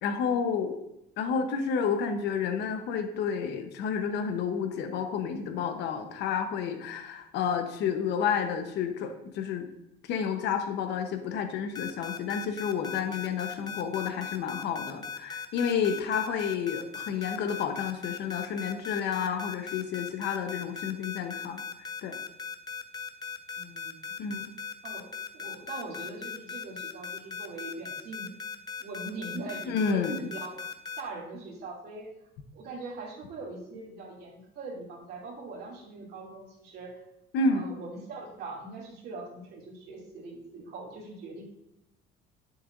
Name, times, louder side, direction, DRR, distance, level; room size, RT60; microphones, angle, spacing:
voice 1, 0.0-0.8 1.2-9.7 10.1-21.6 22.0-22.2 24.2-24.5 29.7-30.2 37.3-37.6, left 6 dB, 70° left, 7 dB, 1.0 m, -30 dB
sound 1, 11.7-31.0, left 6 dB, 20° left, 0.5 m, -38 dB
voice 2, 23.5-24.2 24.8-28.3 28.8-30.6 31.0-32.1 32.5-37.0 37.5-41.4, right 3 dB, 60° right, -3 dB, 2.6 m, -41 dB
9.7 x 7.1 x 2.6 m, 0.85 s
cardioid pair, 150°, 19 cm